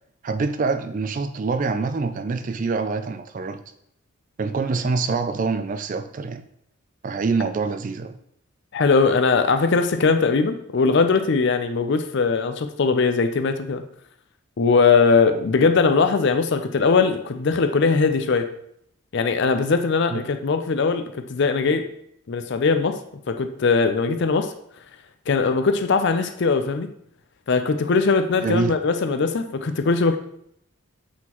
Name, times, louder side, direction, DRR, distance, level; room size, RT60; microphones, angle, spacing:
voice 1, 0.2-3.6 4.4-6.4 7.0-8.1 20.1-20.2 28.4-28.7, right 4 dB, 35° right, 10 dB, 0.3 m, -25 dB
voice 2, 8.7-13.8 14.6-18.5 19.1-21.9 22.3-23.0 23.3-24.5 25.3-26.9 27.5-30.2, left 4 dB, 50° left, 8 dB, 0.4 m, -20 dB
8.3 x 3.8 x 3.0 m, 0.72 s
head